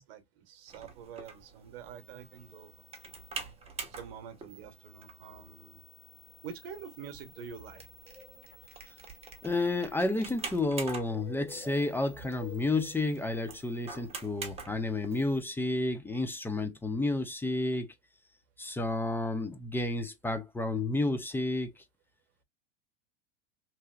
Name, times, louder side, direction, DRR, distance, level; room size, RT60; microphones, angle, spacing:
voice 1, 0.0-2.7 3.9-5.8 6.4-7.8, right 8 dB, 65° right, 1.0 m, -46 dB
sound 1, 0.7-15.4, right 4 dB, 20° right, 0.9 m, -46 dB
voice 2, 9.4-17.9 18.6-21.7, left 2 dB, 5° left, 0.4 m, -31 dB
3.0 x 2.8 x 2.3 m
hypercardioid pair, 110°, 32 cm